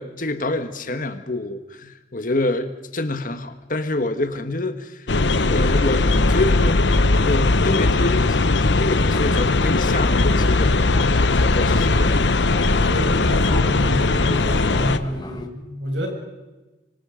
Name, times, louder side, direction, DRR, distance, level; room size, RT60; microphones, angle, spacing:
voice 1, 0.0-5.1 5.5-6.7 7.1-10.8 11.3-12.3, left 2 dB, 45° left, 8 dB, 1.7 m, -27 dB
sound 1, 5.1-15.0, left 3 dB, 80° left, 0.9 m, -19 dB
Fixed-wing aircraft airplane, 8.9-15.5, left 1 dB, 25° left, 1.7 m, -35 dB
voice 2, 12.8-16.1, equal, 85° right, 2 dB, 6.8 m, -28 dB
25.5 x 25.0 x 5.2 m, 1.1 s
head